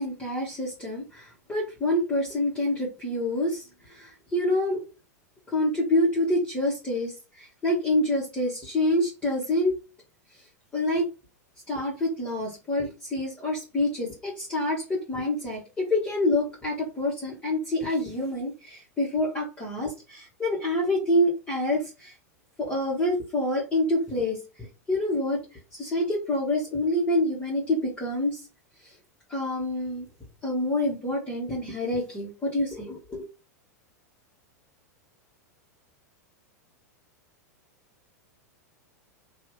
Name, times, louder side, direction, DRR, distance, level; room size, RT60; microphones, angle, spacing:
voice 1, 0.0-4.8 5.5-9.8 10.7-11.1 11.7-22.1 22.6-25.4 25.7-28.4 28.8-28.9 29.3-30.1 30.4-33.2, left 1 dB, 15° left, -6 dB, 1.2 m, -27 dB
2.8 x 2.3 x 3.1 m, 0.29 s
figure-of-eight pair, 90°, 9 cm